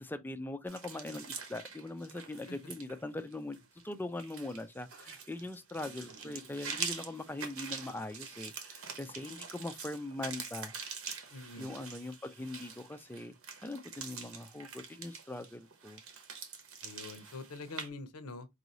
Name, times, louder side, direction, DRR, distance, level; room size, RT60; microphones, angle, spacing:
voice 1, 0.0-3.6 3.8-10.7 11.6-13.3 13.6-16.0, left 2 dB, 10° left, 0.3 m, -41 dB
sound 1, 0.7-17.9, right 6 dB, 70° right, 0.9 m, -45 dB
voice 2, 11.3-11.7 16.8-18.5, left 3 dB, 85° left, 0.7 m, -45 dB
4.7 x 2.6 x 3.0 m
head